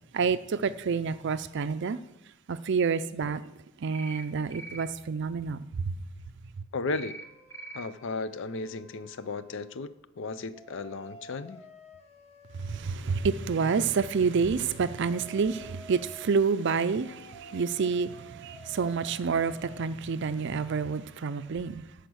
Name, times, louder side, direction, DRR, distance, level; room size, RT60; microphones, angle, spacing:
voice 1, 0.1-2.0 2.5-6.0 12.5-21.9, right 5 dB, 60° right, 12 dB, 0.4 m, -28 dB
sound 1, 3.9-4.3 4.5-4.9 6.9-7.2 7.5-7.8, right 2 dB, 15° left, 1.4 m, -42 dB
voice 2, 6.7-7.2 7.7-11.6, left 3 dB, 65° left, 14 dB, 0.5 m, -35 dB
Poorly Played Flute, 7.0-9.9 10.5-16.3 16.9-19.9, right 1 dB, 30° left, 1.3 m, -51 dB
13.5 x 5.0 x 6.3 m, 0.89 s
head